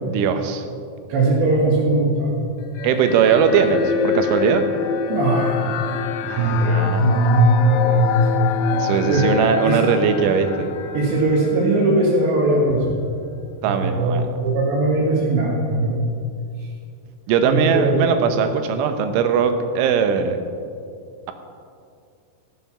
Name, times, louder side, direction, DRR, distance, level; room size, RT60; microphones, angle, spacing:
voice 1, 0.0-0.7 2.8-4.7 6.2-7.1 8.8-10.7 13.6-14.2 17.3-20.4, right 7 dB, 85° right, 7 dB, 3.4 m, -20 dB
voice 2, 1.1-2.5 5.1-5.8 6.4-8.6 9.1-9.3 9.6-9.8 10.9-13.1 13.6-16.1 17.4-18.1, right 2 dB, 70° right, -3 dB, 3.7 m, -19 dB
sound 1, 2.8-12.3, left 7 dB, 80° left, 3.0 m, -26 dB
16.5 x 8.1 x 5.7 m, 2.4 s
omnidirectional pair, 5.5 m